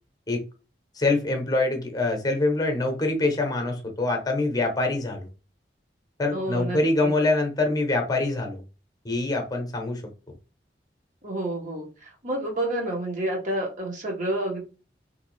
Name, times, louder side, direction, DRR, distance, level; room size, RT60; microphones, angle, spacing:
voice 1, 0.9-5.3 6.2-8.6 9.0-10.0, left 2 dB, 20° left, 3 dB, 0.8 m, -25 dB
voice 2, 6.3-7.1 11.2-14.6, right 1 dB, 45° right, 0 dB, 1.0 m, -29 dB
3.1 x 2.7 x 3.1 m, 0.32 s
head